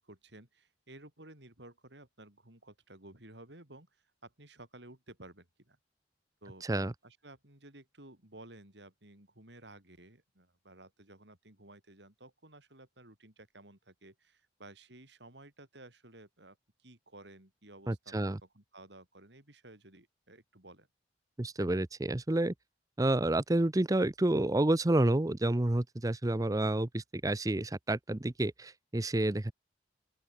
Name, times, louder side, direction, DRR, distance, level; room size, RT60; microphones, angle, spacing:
voice 1, 0.0-5.8 6.4-6.7 7.0-20.9, right 2 dB, 70° right, 4.9 m, -54 dB
voice 2, 6.6-6.9 17.9-18.4 21.4-22.5 23.0-29.5, right 1 dB, 20° right, 0.6 m, -29 dB
open air
head